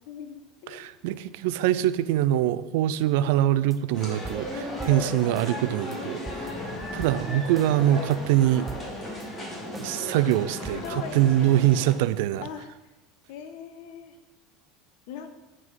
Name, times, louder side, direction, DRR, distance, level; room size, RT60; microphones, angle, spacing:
voice 1, 0.1-0.9 5.9-6.9 10.7-11.5 12.4-12.7 13.3-14.2 15.1-15.3, left 7 dB, 70° left, 8 dB, 1.1 m, -40 dB
voice 2, 0.7-6.2 6.9-8.7 9.8-12.4, right 12 dB, 75° right, 16 dB, 0.4 m, -23 dB
sound 1, 3.7-3.8 4.1-5.5 5.9-6.0 6.3-7.7 8.1-8.2 8.5-9.3 9.7-9.9 10.3-10.4 10.6-10.9, right 2 dB, 10° right, 0.6 m, -42 dB
sound 2, 3.9-11.9, equal, 20° left, 2.5 m, -36 dB
9.5 x 5.1 x 5.7 m, 1.1 s
supercardioid pair, 130°, 0 cm